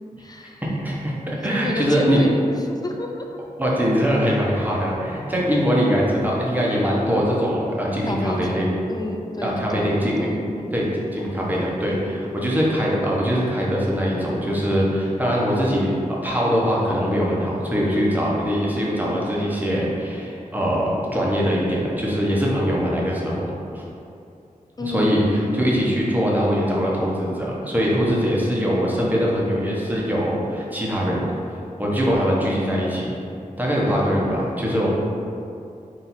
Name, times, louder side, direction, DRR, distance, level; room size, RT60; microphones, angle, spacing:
voice 1, 0.2-0.6 1.3-3.2 5.3-5.5 8.1-10.7 24.8-25.1, left 2 dB, 30° left, 2 dB, 0.4 m, -31 dB
voice 2, 0.8-2.2 3.6-8.7 9.4-10.3 10.7-23.5 23.7-23.8 24.8-31.3 31.8-33.1 33.6-34.9, equal, 10° right, -5 dB, 1.0 m, -22 dB
4.4 x 2.7 x 4.1 m, 2.5 s
wide cardioid pair, 65°, 14 cm